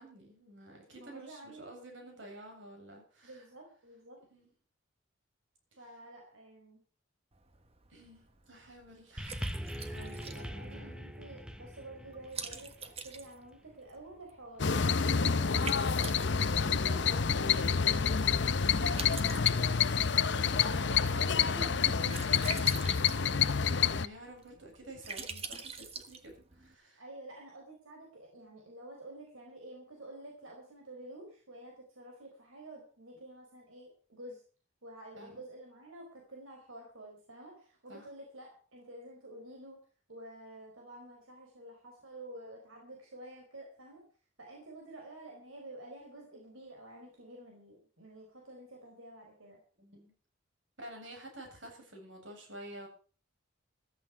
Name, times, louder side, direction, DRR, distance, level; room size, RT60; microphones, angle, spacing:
voice 1, 0.0-3.4 4.3-4.5 7.9-10.9 18.9-19.9 21.1-27.0 35.1-35.4 37.9-38.1 49.8-50.1 50.8-52.9, right 1 dB, 65° right, 2 dB, 7.6 m, -50 dB
voice 2, 1.0-1.6 3.2-4.2 5.8-6.8 10.3-18.3 18.8-19.2 20.1-22.1 27.0-34.4 34.8-39.8 40.1-44.0 44.4-49.6, right 1 dB, 85° right, 1 dB, 4.7 m, -50 dB
Liquid, 7.3-26.7, right 5 dB, 30° right, 1.4 m, -47 dB
sound 1, 9.2-13.7 14.6-14.7, equal, 5° right, 0.9 m, -42 dB
sound 2, 14.6-24.1, left 6 dB, 60° left, 0.7 m, -28 dB
15.0 x 13.5 x 4.7 m, 0.40 s
head